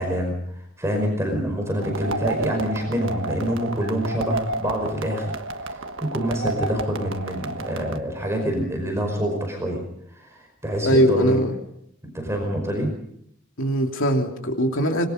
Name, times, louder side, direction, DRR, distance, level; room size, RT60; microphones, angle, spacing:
voice 1, 0.0-5.8 6.1-9.8 10.1-11.4 12.1-12.9, equal, 15° right, 2 dB, 5.2 m, -26 dB
sound 1, 1.8-8.0, right 2 dB, 70° right, 1.5 m, -31 dB
voice 2, 10.8-11.5 13.6-15.1, equal, 70° left, 3 dB, 3.1 m, -21 dB
26.0 x 22.5 x 5.3 m, 0.73 s
head